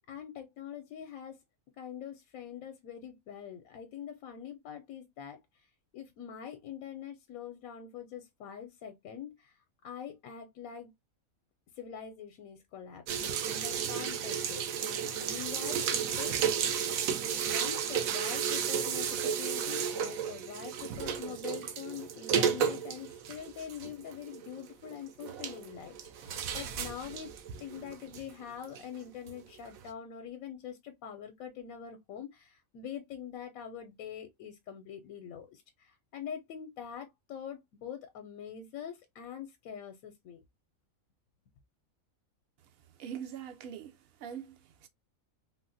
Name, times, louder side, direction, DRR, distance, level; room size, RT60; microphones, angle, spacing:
voice 1, 0.1-1.4 1.8-10.9 11.7-16.6 17.4-27.3 27.6-40.4, left 8 dB, 80° left, 1.0 m, -44 dB
sound 1, 13.1-28.8 29.3-29.4 29.8-29.9, right 8 dB, 80° right, 1.0 m, -33 dB
voice 2, 43.0-44.9, right 8 dB, 60° right, 0.7 m, -43 dB
3.8 x 2.1 x 2.5 m
omnidirectional pair, 1.4 m